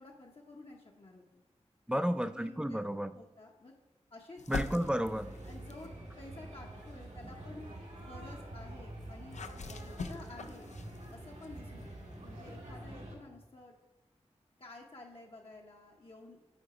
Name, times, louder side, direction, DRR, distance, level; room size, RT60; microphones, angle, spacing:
voice 1, 0.0-1.4 1.9-2.8 3.1-3.7 4.1-4.4 5.5-5.9 6.2-7.7 8.0-9.4 9.7-10.7 11.1-13.8 14.6-16.4, left 2 dB, 55° left, -1 dB, 0.8 m, -52 dB
voice 2, 1.9-3.1 4.5-5.3, equal, 5° right, 12 dB, 0.4 m, -32 dB
sound 1, 4.4-6.0 6.6-12.8, left 4 dB, 85° left, 0.5 m, -46 dB
sound 2, 4.8-13.1, right 1 dB, 80° right, 1.6 m, -47 dB
8.9 x 3.9 x 4.9 m, 1.1 s
wide cardioid pair, 60°, 12 cm